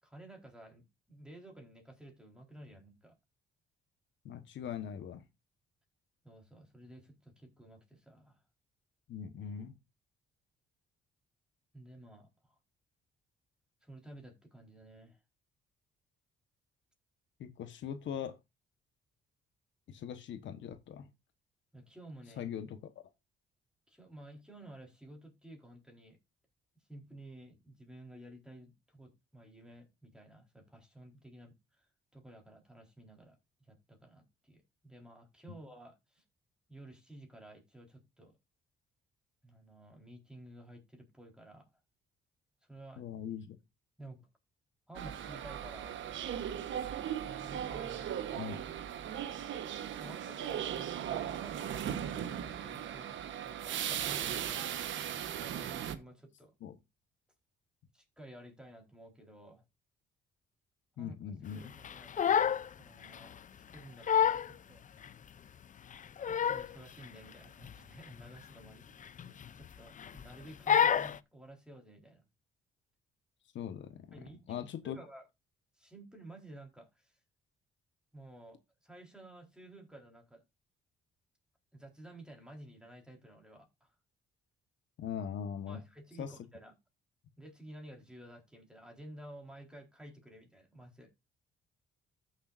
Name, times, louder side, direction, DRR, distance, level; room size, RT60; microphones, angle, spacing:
voice 1, 0.0-3.2 6.2-8.4 11.7-12.6 13.8-15.2 21.7-22.5 23.9-26.2 26.9-31.9 32.1-36.2 36.7-38.4 39.4-41.7 42.7-43.1 44.0-44.3 44.9-46.0 47.3-48.1 50.0-55.0 55.4-56.5 57.9-59.6 61.0-61.2 61.5-63.4 63.7-64.8 66.2-72.2 74.1-75.3 75.8-77.1 78.1-80.4 81.7-83.9 85.7-86.7 87.4-91.1, right 1 dB, 5° right, 4.1 m, -53 dB
voice 2, 4.2-5.2 9.1-9.8 17.4-18.4 19.9-21.1 22.4-22.8 43.0-43.6 48.3-48.6 56.6-56.8 61.0-61.7 73.5-74.2 74.5-75.0 85.0-85.8 86.2-86.3, left 8 dB, 70° left, 1.3 m, -41 dB
sound 1, 44.9-56.0, right 10 dB, 75° right, 1.2 m, -38 dB
Crying sobbing, 61.8-62.7 63.0-63.3 63.7-63.8 64.1-64.5 65.0-65.1 65.9-66.8 67.0-67.3 67.6-67.8 68.1-68.3 69.1-69.7 70.0-70.3 70.7-71.2, left 8 dB, 40° left, 0.5 m, -28 dB
14.5 x 6.6 x 2.6 m
cardioid pair, 90°, 20 cm